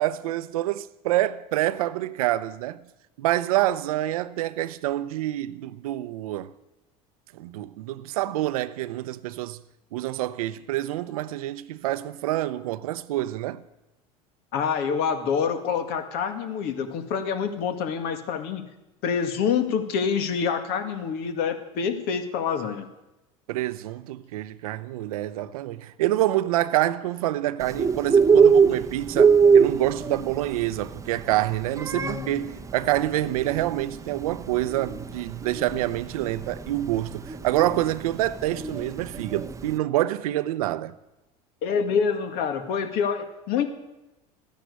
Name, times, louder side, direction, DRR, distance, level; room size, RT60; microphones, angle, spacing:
voice 1, 0.0-2.8 3.2-6.5 7.3-9.6 9.9-13.6 23.5-40.9, right 14 dB, 85° right, 0.7 m, -27 dB
voice 2, 14.5-18.6 19.0-22.9 31.9-32.5 41.6-43.7, left 6 dB, 65° left, 2.0 m, -26 dB
Bird, 27.6-39.7, right 6 dB, 15° right, 0.8 m, -23 dB
14.5 x 10.0 x 8.2 m
supercardioid pair, 100°, 18 cm